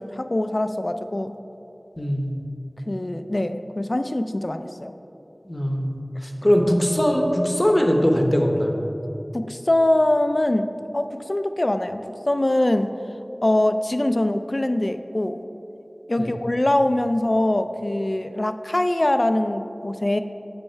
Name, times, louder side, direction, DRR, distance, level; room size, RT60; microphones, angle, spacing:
voice 1, 0.0-1.4 2.9-4.9 9.3-12.9 13.4-15.4 16.1-20.2, left 1 dB, 45° left, 9 dB, 0.3 m, -23 dB
voice 2, 2.0-2.4 5.5-5.9 6.2-8.8 16.2-16.3, equal, 25° left, 2 dB, 0.9 m, -21 dB
8.2 x 5.5 x 4.4 m, 2.9 s
wide cardioid pair, 50°, 0 cm